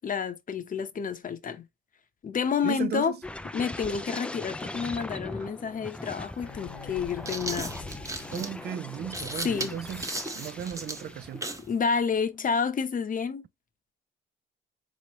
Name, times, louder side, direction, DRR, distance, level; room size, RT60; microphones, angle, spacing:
voice 1, 0.0-1.7 2.2-3.1 3.5-7.8 9.4-9.8 11.7-13.4, left 6 dB, 45° left, 0.8 m, -29 dB
voice 2, 2.6-3.2 8.3-11.4, right 10 dB, 55° right, 0.4 m, -35 dB
sound 1, 3.2-11.7 12.1-12.4, left 1 dB, 5° left, 0.3 m, -40 dB
sound 2, 5.9-6.0 6.9-11.7, right 2 dB, 15° right, 0.8 m, -36 dB
Bowed string instrument, 6.4-10.0, left 9 dB, 85° left, 0.6 m, -49 dB
3.9 x 3.1 x 2.9 m
cardioid pair, 90°, 20 cm